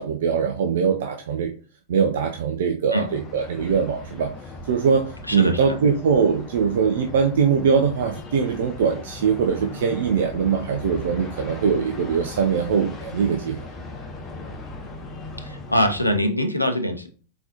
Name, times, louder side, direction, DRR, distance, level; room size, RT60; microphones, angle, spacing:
voice 1, 0.0-1.5 1.9-4.3 4.7-13.6, right 6 dB, 60° right, 4 dB, 0.5 m, -22 dB
sound 1, 3.0-16.2, left 3 dB, 20° left, 0.9 m, -38 dB
voice 2, 5.3-5.7 15.4-17.1, equal, 90° left, 6 dB, 0.6 m, -23 dB
4.0 x 3.9 x 2.8 m, 0.40 s
figure-of-eight pair, 90°, 0 cm